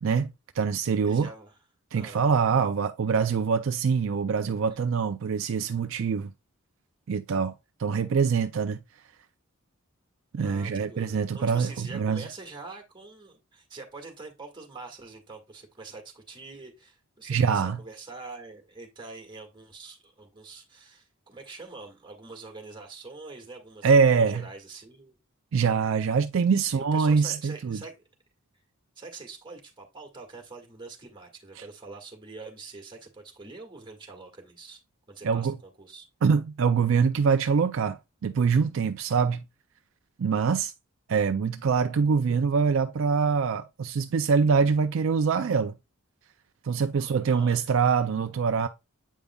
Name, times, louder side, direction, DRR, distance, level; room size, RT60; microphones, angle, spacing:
voice 1, 0.0-1.3 1.9-6.3 7.1-7.5 7.8-8.8 10.3-12.2 17.2-17.8 23.8-24.5 25.5-27.8 31.6-31.7 35.2-35.6 36.2-39.4 40.2-40.7 41.1-45.7 46.6-48.7, right 5 dB, 60° right, 0.4 m, -24 dB
voice 2, 1.0-1.6 1.9-2.2 10.4-25.2 26.5-28.0 28.9-34.8 35.1-36.1 47.0-47.7, right 3 dB, 20° right, 1.7 m, -44 dB
8.2 x 5.2 x 2.3 m
head